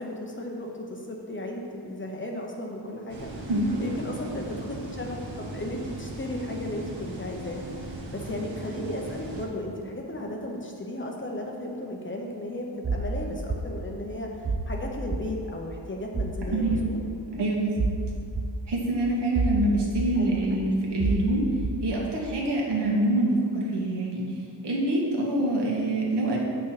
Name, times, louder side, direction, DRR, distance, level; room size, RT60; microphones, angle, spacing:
voice 1, 0.0-3.5 3.8-17.0 20.1-20.7, left 1 dB, 25° left, 0 dB, 0.8 m, -35 dB
sound 1, 3.1-9.5, right 2 dB, 90° right, 1.4 m, -38 dB
voice 2, 3.5-3.8 16.5-16.9 17.4-17.9 18.7-21.4 21.8-24.2 24.6-26.4, right 1 dB, 65° right, -3 dB, 1.8 m, -25 dB
sound 2, 12.8-13.1 13.5-13.6 14.4-14.7 15.1-15.2 16.1-16.4 16.7-16.8 17.8-18.0 18.4-18.5 19.4-19.6 20.0-20.1 21.0-21.2 21.6-21.8, right 4 dB, 20° right, 0.5 m, -27 dB
7.9 x 5.8 x 4.9 m, 2.3 s
wide cardioid pair, 140°, 45 cm